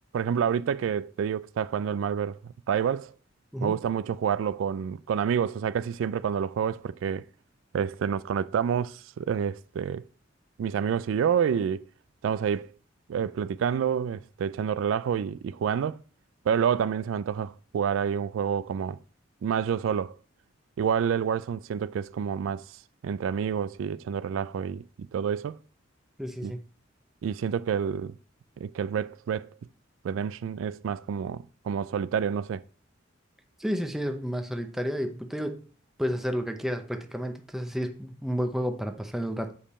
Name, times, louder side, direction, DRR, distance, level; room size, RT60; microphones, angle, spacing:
voice 1, 0.1-2.4 2.7-3.1 3.6-7.2 7.7-10.0 10.6-11.8 12.2-12.7 13.1-16.0 16.5-19.0 19.4-20.2 20.8-22.6 23.0-24.8 25.1-25.6 26.4-26.5 27.2-28.1 28.6-29.5 30.0-32.6, right 7 dB, 85° right, 0.3 m, -28 dB
voice 2, 26.2-26.6 33.6-35.7 36.0-39.5, equal, ahead, 0.7 m, -31 dB
7.2 x 5.1 x 4.2 m
head